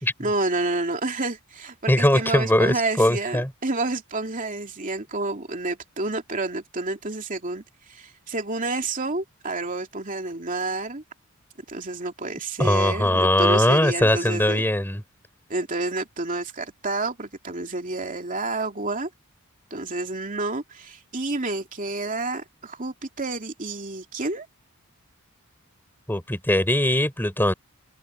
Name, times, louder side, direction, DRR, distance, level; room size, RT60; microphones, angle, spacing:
voice 1, 0.2-7.6 7.9-11.0 11.7-14.6 15.5-19.1 19.7-24.5, right 2 dB, 35° right, 2.8 m, -29 dB
voice 2, 1.9-3.5 12.6-15.0 26.1-27.5, left 1 dB, 10° left, 4.8 m, -20 dB
head